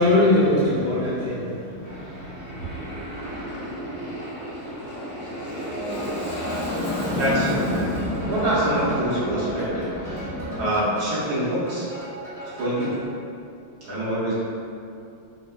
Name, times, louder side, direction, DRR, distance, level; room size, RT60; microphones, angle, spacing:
voice 1, 0.0-2.9, left 1 dB, 60° left, -13 dB, 0.5 m, -22 dB
Aircraft, 1.8-10.6, left 1 dB, 40° left, 1.3 m, -31 dB
sound 1, 5.7-13.0, right 1 dB, ahead, 0.6 m, -36 dB
voice 2, 7.1-7.9 8.3-10.3 10.6-11.9 12.4-13.0 13.8-14.3, right 1 dB, 65° right, -9 dB, 1.8 m, -25 dB
5.4 x 3.9 x 2.4 m, 2.6 s
omnidirectional pair, 2.4 m